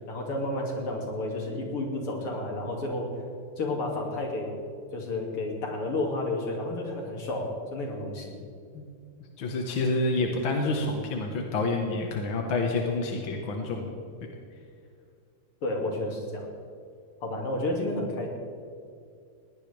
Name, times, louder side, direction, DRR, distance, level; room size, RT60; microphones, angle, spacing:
voice 1, 0.1-3.1 3.6-4.6 4.9-8.4 15.6-16.5 17.2-18.3, left 2 dB, 90° left, 0 dB, 3.5 m, -31 dB
voice 2, 9.4-13.9, left 2 dB, 65° left, 1 dB, 2.3 m, -28 dB
20.5 x 18.0 x 3.5 m, 2.3 s
omnidirectional pair, 2.4 m